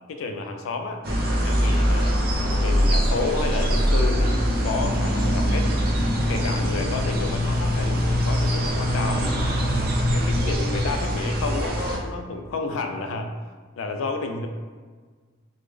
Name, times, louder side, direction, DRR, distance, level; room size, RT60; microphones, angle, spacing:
voice 1, 0.1-2.3 2.6-5.7 6.3-9.4 10.1-13.3 13.8-14.5, left 3 dB, 80° left, 5 dB, 0.4 m, -30 dB
sound 1, 1.0-12.0, equal, 50° right, 0.5 m, -23 dB
3.3 x 2.0 x 3.3 m, 1.5 s
head